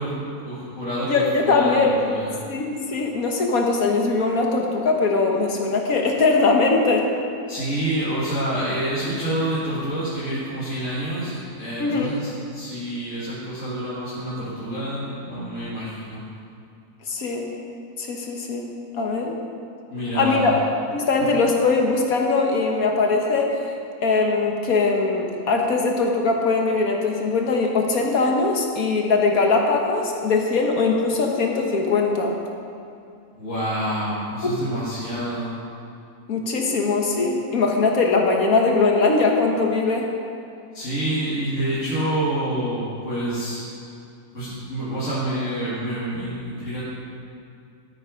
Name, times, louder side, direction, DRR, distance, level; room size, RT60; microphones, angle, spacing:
voice 1, 0.0-1.7 2.0-2.3 7.5-16.2 19.9-20.5 21.3-21.4 33.3-35.5 40.7-43.6 44.3-46.8, right 1 dB, 55° left, -10 dB, 2.5 m, -27 dB
voice 2, 1.1-2.0 2.5-7.1 11.8-12.2 17.1-17.4 18.0-18.7 19.0-19.4 20.2-20.5 20.9-23.5 24.0-32.4 36.3-40.1, left 3 dB, 75° left, 1 dB, 1.7 m, -21 dB
12.5 x 8.9 x 5.1 m, 2.6 s
omnidirectional pair, 1.5 m